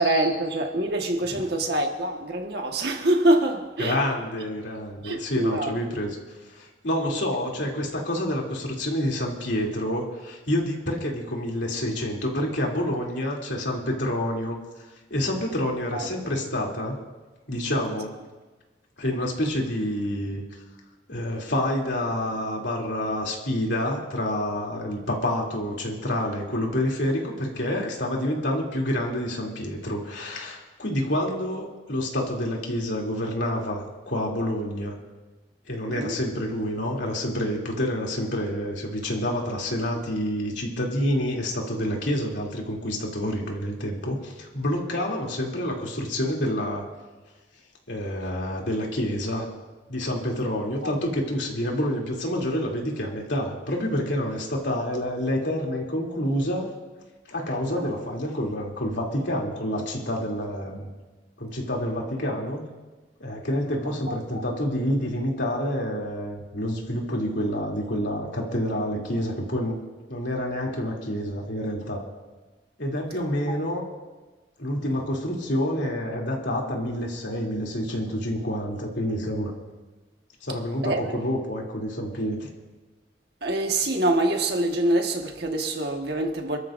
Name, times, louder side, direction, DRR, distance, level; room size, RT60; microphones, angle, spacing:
voice 1, 0.0-4.0 5.0-5.8 7.1-7.2 15.9-16.1 35.9-36.2 50.8-50.9 57.8-57.9 64.1-64.5 73.4-73.5 80.8-81.2 83.4-86.6, right 1 dB, 60° right, 1.6 m, -25 dB
voice 2, 3.8-14.6 15.1-17.0 17.5-18.1 19.0-20.4 21.1-35.0 35.7-46.8 47.9-49.5 49.9-56.7 57.3-60.9 61.4-62.6 63.2-69.8 70.1-72.0 72.8-73.8 74.6-79.5 80.4-82.5, left 1 dB, 75° left, 3.0 m, -28 dB
27.5 x 13.5 x 2.6 m
head